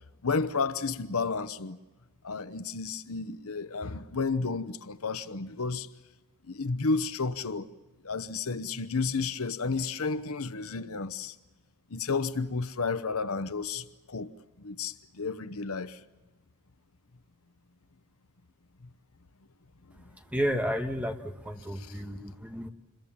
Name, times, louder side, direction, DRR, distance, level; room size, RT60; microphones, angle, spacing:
voice 1, 0.2-1.8 2.2-5.9 6.5-7.7 8.0-11.3 11.9-14.3 14.6-16.0 21.7-21.9, left 4 dB, 70° left, 0.9 m, -32 dB
voice 2, 20.3-22.7, equal, 5° right, 1.4 m, -32 dB
27.5 x 22.5 x 7.2 m
head